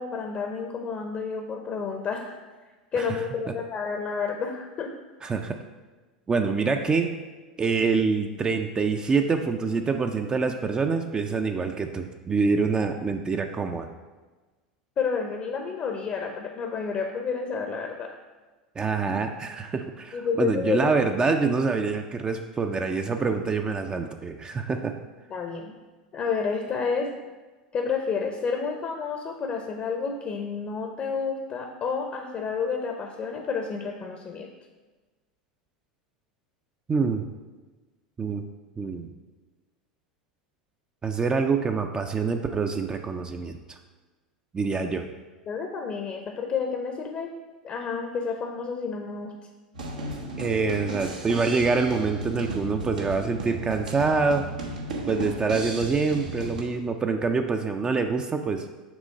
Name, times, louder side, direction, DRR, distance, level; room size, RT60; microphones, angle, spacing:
voice 1, 0.0-2.3 2.9-4.9 15.0-18.1 20.1-20.9 25.3-25.7 26.1-27.1 27.7-34.5 45.5-47.3 47.6-49.3, left 5 dB, 35° left, 4 dB, 0.7 m, -30 dB
voice 2, 5.2-5.6 6.3-7.1 7.6-13.9 18.8-24.9 36.9-37.3 38.2-38.4 38.8-39.1 41.0-43.8 44.5-45.0 50.4-54.4 55.1-58.6, right 4 dB, 20° right, 5 dB, 0.4 m, -26 dB
sound 1, 49.7-56.6, right 1 dB, 75° right, 0.9 m, -35 dB
6.1 x 3.7 x 5.1 m, 1.3 s
figure-of-eight pair, 80°, 4 cm